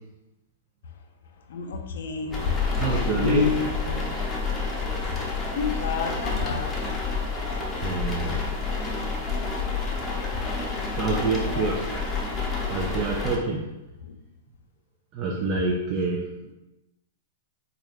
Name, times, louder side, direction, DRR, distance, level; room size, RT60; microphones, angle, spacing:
voice 1, 1.5-2.5 3.2-4.0 5.6-6.7 7.4-7.7 11.4-11.7, left 6 dB, 70° left, 4 dB, 0.5 m, -29 dB
sound 1, 2.3-13.4, left 4 dB, 15° left, 0.6 m, -29 dB
voice 2, 2.6-3.6 7.8-8.4 10.9-11.9 12.7-13.7 15.1-16.5, right 3 dB, 35° right, 0 dB, 0.4 m, -27 dB
3.4 x 2.4 x 3.2 m, 0.99 s
hypercardioid pair, 140°, 0 cm